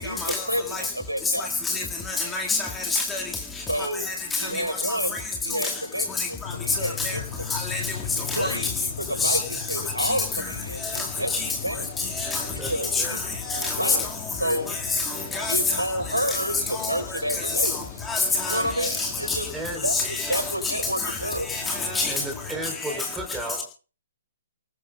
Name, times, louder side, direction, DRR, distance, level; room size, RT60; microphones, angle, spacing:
voice 1, 0.0-1.5 3.7-4.1 4.4-5.2 5.4-7.5 8.3-11.9 12.7-13.2 13.8-14.0 14.4-14.7 15.5-17.7 18.4-19.5 19.8-19.9 20.3-21.5, equal, 85° right, 4.5 m, -29 dB
voice 2, 2.2-3.2 4.3-4.5 4.8-5.0 6.2-6.3 7.0-7.1 7.5-7.8 8.3-8.5 9.2-9.4 10.0-10.1 12.2-12.4 12.9-13.0 13.5-14.0 15.0-15.1 15.3-15.6 16.8-16.9 17.6-17.7 18.1-19.4 19.9-20.4 21.0-21.1 21.5-22.1 22.8-23.0, left 3 dB, 10° left, 2.0 m, -26 dB
sound 1, 6.4-22.7, left 8 dB, 35° left, 2.9 m, -39 dB
voice 3, 12.6-13.2 19.5-20.0 22.1-23.6, right 1 dB, 5° right, 3.7 m, -34 dB
29.0 x 19.0 x 2.3 m
figure-of-eight pair, 125°, 0 cm